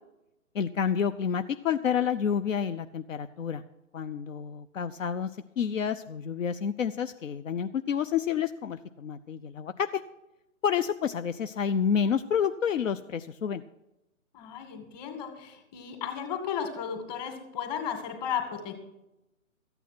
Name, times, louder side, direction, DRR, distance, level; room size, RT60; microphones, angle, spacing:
voice 1, 0.5-3.6 3.9-5.3 5.6-10.0 10.6-13.6, left 7 dB, 70° left, 11 dB, 0.7 m, -29 dB
voice 2, 14.3-18.7, left 8 dB, 30° left, 5 dB, 2.3 m, -34 dB
14.0 x 9.1 x 6.1 m, 0.95 s
hypercardioid pair, 145°, 41 cm